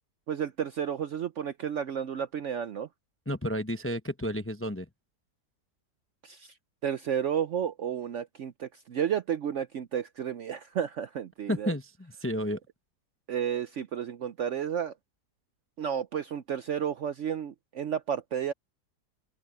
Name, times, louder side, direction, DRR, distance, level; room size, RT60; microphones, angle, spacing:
voice 1, 0.3-2.9 6.2-6.5 6.8-11.7 13.3-14.9 15.8-18.5, right 8 dB, 60° right, 0.8 m, -32 dB
voice 2, 3.3-4.9 11.5-12.6, equal, 10° left, 0.6 m, -31 dB
open air
omnidirectional pair, 1.7 m